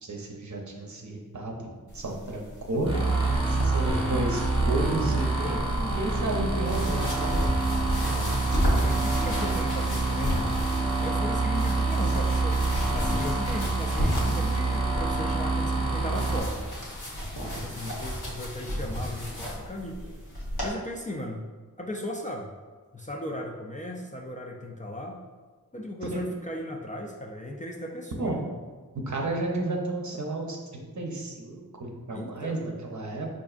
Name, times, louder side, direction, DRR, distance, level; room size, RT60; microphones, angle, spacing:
voice 1, 0.0-2.9 3.6-7.7 26.0-26.3 28.2-28.5 29.1-33.3, right 2 dB, 50° right, 0 dB, 0.7 m, -32 dB
sound 1, 1.9-20.7, equal, 80° left, 1.0 m, -33 dB
voice 2, 2.9-3.8 8.0-10.4 11.0-12.6 12.9-16.6 17.4-20.0 20.6-21.5 21.8-22.5 22.9-25.2 25.7-28.4 32.1-32.7, left 1 dB, 20° left, -1 dB, 0.3 m, -36 dB
sound 2, 2.9-16.4, right 3 dB, 15° right, 0.9 m, -27 dB
4.6 x 2.5 x 2.4 m, 1.4 s
wide cardioid pair, 50°, 36 cm